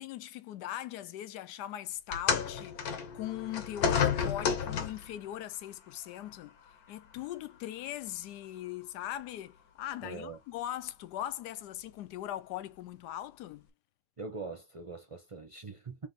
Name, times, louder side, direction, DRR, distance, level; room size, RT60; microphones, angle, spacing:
voice 1, 0.0-6.6 6.9-13.7, left 12 dB, 90° left, 1.2 m, -40 dB
sound 1, 2.1-5.2 6.2-6.3 7.2-7.3, left 7 dB, 70° left, 1.3 m, -31 dB
voice 2, 10.0-10.4 14.2-16.1, right 4 dB, 40° right, 0.4 m, -42 dB
3.5 x 2.7 x 3.9 m
omnidirectional pair, 1.7 m